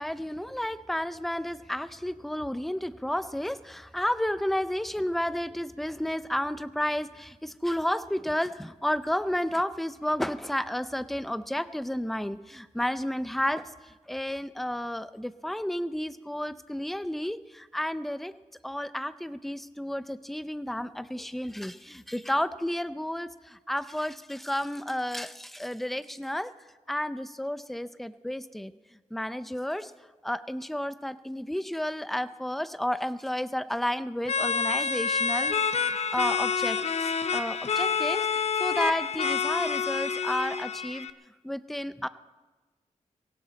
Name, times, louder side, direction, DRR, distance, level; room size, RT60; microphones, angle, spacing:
voice 1, 0.0-13.7 14.1-18.3 18.6-23.3 23.7-26.5 26.9-28.7 29.1-29.9 30.2-36.8 37.3-38.2 38.6-41.1 41.4-42.1, left 1 dB, ahead, 13 dB, 0.5 m, -31 dB
sound 1, 34.2-41.1, left 6 dB, 55° left, 0.7 m, -28 dB
19.5 x 17.5 x 4.0 m, 1.2 s
wide cardioid pair, 140°, 13 cm